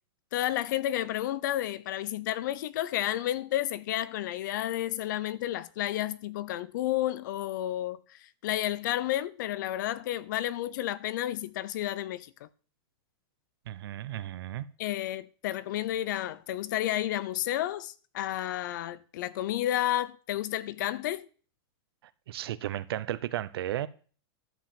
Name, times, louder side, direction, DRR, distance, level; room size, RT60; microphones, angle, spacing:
voice 1, 0.3-12.5 14.8-21.3, left 13 dB, 45° left, 0.6 m, -31 dB
voice 2, 13.7-14.7 22.3-23.9, right 13 dB, 65° right, 0.8 m, -34 dB
11.5 x 5.0 x 7.6 m
supercardioid pair, 175°, 14 cm